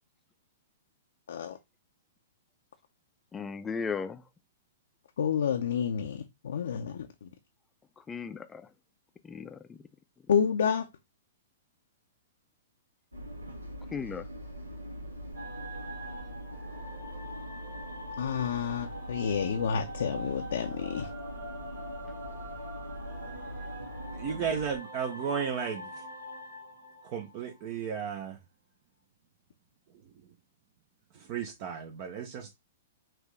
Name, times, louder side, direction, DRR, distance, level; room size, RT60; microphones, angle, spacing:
voice 1, 3.3-4.2 8.1-8.6 9.2-9.8 13.9-14.3, left 5 dB, 15° left, 0.5 m, -36 dB
voice 2, 5.2-7.3 10.3-10.9 18.2-21.1, left 7 dB, 65° left, 0.6 m, -29 dB
sound 1, 13.1-24.8, equal, 85° right, 1.2 m, -42 dB
sound 2, 15.3-27.9, equal, 70° right, 1.7 m, -44 dB
voice 3, 24.1-25.9 27.0-28.4 31.1-32.5, right 7 dB, 40° right, 0.7 m, -34 dB
6.0 x 2.7 x 3.2 m
figure-of-eight pair, 110°, 0 cm